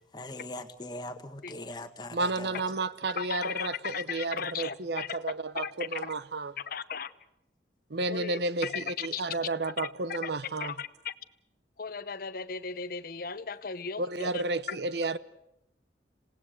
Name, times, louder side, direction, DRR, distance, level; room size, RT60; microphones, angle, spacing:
voice 1, 0.1-2.6, left 1 dB, 25° left, 1.6 m, -41 dB
voice 2, 2.1-6.5 7.9-10.7 14.0-15.2, right 3 dB, 65° right, 0.9 m, -32 dB
voice 3, 3.2-5.2 5.5-6.1 6.7-7.1 8.1-9.2 9.6-10.3 10.6-11.1 11.8-14.4 14.7-14.8, left 6 dB, 55° left, 0.8 m, -36 dB
27.0 x 17.5 x 8.0 m
head